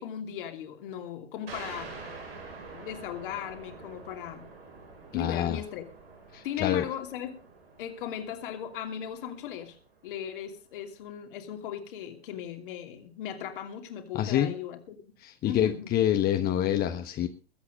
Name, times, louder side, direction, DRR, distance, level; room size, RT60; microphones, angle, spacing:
voice 1, 0.0-2.0 2.7-4.5 5.1-5.9 6.4-7.4 7.8-9.8 10.0-15.0 15.4-15.9, left 9 dB, 55° left, 6 dB, 3.0 m, -37 dB
sound 1, 1.5-10.7, right 4 dB, 75° right, 7.2 m, -47 dB
voice 2, 5.1-5.6 6.3-6.8 14.1-14.5 15.2-17.3, left 11 dB, 30° left, 8 dB, 1.3 m, -27 dB
21.5 x 8.6 x 5.3 m, 0.38 s
figure-of-eight pair, 95°, 31 cm